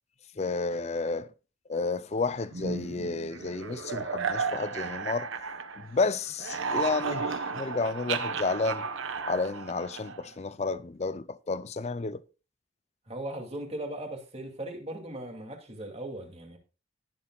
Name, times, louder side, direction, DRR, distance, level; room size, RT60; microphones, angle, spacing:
voice 1, 0.4-1.3 1.7-5.3 5.8-8.9 9.2-12.2, left 3 dB, 35° left, 0.5 m, -31 dB
sound 1, 2.5-6.0 6.3-10.3, right 5 dB, 75° right, 1.1 m, -34 dB
voice 2, 13.1-16.6, right 1 dB, 30° right, 2.5 m, -38 dB
19.0 x 7.3 x 2.3 m
head